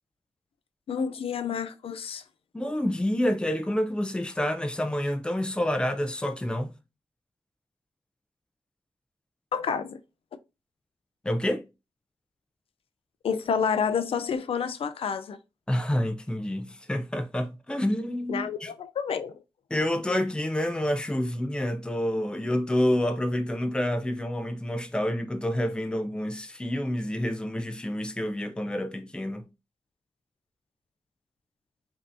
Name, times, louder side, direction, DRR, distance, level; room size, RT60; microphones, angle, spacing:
voice 1, 0.9-2.2 9.5-10.0 13.2-15.4 18.3-19.4, left 6 dB, 80° left, 0.4 m, -29 dB
voice 2, 2.5-6.8 11.2-11.6 15.7-18.7 19.7-29.4, left 1 dB, 10° left, 0.5 m, -28 dB
5.3 x 2.8 x 2.6 m
wide cardioid pair, 145°, 10 cm